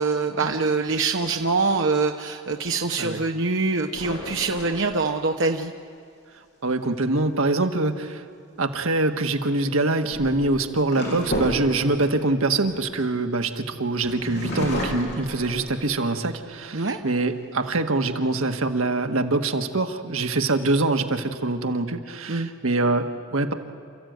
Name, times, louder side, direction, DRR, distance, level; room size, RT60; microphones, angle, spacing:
voice 1, 0.0-5.7 16.7-17.0 22.3-22.5, right 3 dB, 60° right, 4 dB, 1.0 m, -24 dB
sound 1, 3.9-5.5 8.5-8.8 9.8-13.5 14.0-16.2 16.7-16.8 17.1-17.7, equal, 55° left, 6.3 m, -33 dB
voice 2, 6.6-8.2 8.6-23.5, right 2 dB, 80° right, 6 dB, 1.6 m, -24 dB
28.5 x 14.5 x 9.4 m, 2.5 s
head